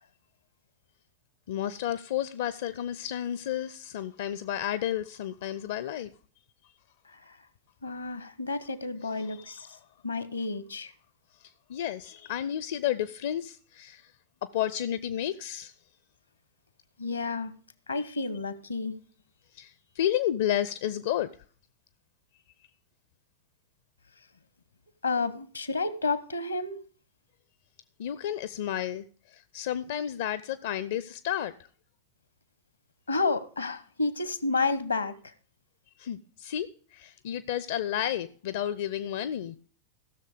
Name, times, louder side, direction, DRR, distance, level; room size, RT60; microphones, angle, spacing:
voice 1, 1.5-6.1 9.3-9.8 11.4-14.1 14.4-15.7 18.1-18.3 19.5-21.3 28.0-31.5 36.0-39.6, left 11 dB, 55° left, 0.5 m, -32 dB
voice 2, 7.8-9.6 10.0-10.9 17.0-17.5 17.9-19.0 25.0-26.8 33.1-35.1, left 3 dB, 80° left, 1.1 m, -30 dB
16.0 x 6.7 x 5.0 m
figure-of-eight pair, 90°, 0 cm